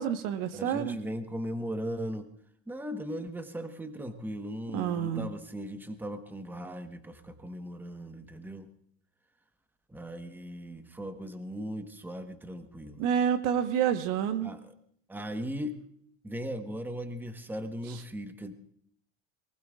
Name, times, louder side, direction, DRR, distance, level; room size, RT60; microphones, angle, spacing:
voice 1, 0.0-1.0 4.7-5.3 13.0-14.5, right 8 dB, 60° right, 9 dB, 1.3 m, -28 dB
voice 2, 0.5-2.3 2.7-8.7 9.9-13.1 14.4-14.7 15.1-15.8 16.2-18.5, equal, 5° right, 7 dB, 1.2 m, -38 dB
23.0 x 20.0 x 2.4 m, 0.66 s
supercardioid pair, 100°, 35 cm